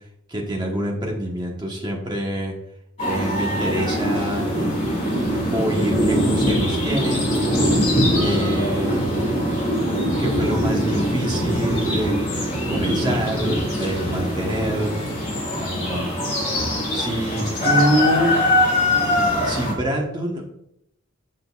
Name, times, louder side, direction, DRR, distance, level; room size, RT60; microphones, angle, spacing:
voice 1, 0.3-2.5 3.1-4.4 5.5-7.8 8.1-9.0 10.2-12.1 12.7-14.9 15.5-16.1 16.9-18.4 19.4-20.6, right 1 dB, 20° right, 0 dB, 1.3 m, -26 dB
sound 1, 3.0-19.7, equal, 30° left, 2.4 m, -22 dB
8.2 x 6.4 x 2.5 m, 0.77 s
head